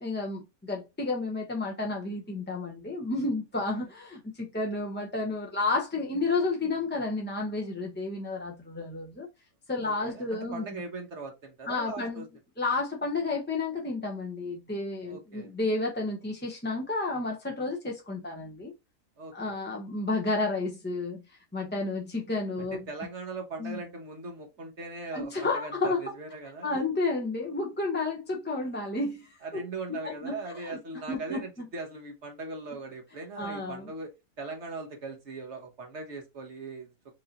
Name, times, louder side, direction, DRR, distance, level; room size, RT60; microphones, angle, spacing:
voice 1, 0.0-9.3 9.7-10.7 11.7-12.2 12.6-18.7 19.3-21.2 21.5-22.8 23.6-23.8 25.1-26.2 26.6-29.7 30.0-31.4 33.4-33.9, left 3 dB, 15° left, 0.4 m, -31 dB
voice 2, 9.8-12.3 15.1-15.5 19.2-19.6 22.7-26.9 29.4-36.9, right 3 dB, 55° right, 1.3 m, -40 dB
4.7 x 2.6 x 2.8 m
omnidirectional pair, 1.5 m